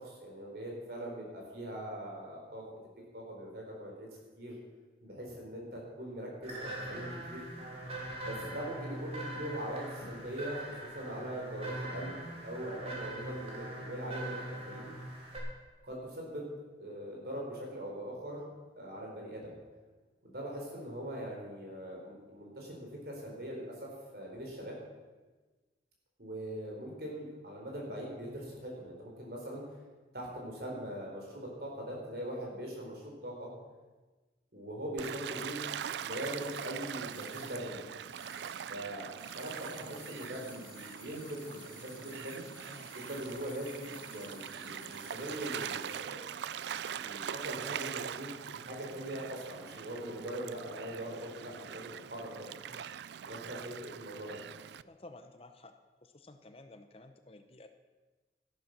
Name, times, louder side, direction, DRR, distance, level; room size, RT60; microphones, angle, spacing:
voice 1, 0.0-2.6 3.1-4.1 4.4-4.6 5.0-7.5 8.2-14.9 15.9-18.5 18.8-19.5 20.2-24.8 26.2-29.6 30.1-33.5 34.5-35.7 36.0-37.8 38.7-39.1 39.4-42.4 42.9-46.2 46.9-48.4 48.7-52.5 53.2-54.4, equal, 60° right, -1 dB, 4.2 m, -41 dB
sound 1, 6.4-15.4, right 1 dB, 35° right, 2.9 m, -42 dB
Gull seagull / Waves surf, 35.0-54.8, right 8 dB, 75° right, 0.4 m, -42 dB
sound 2, 36.1-38.8 39.1-46.1 46.4-46.5, left 1 dB, 15° right, 3.5 m, -54 dB
voice 2, 54.8-55.7 56.0-57.7, left 2 dB, 30° left, 8 dB, 0.8 m, -53 dB
13.0 x 11.5 x 6.1 m, 1.3 s
head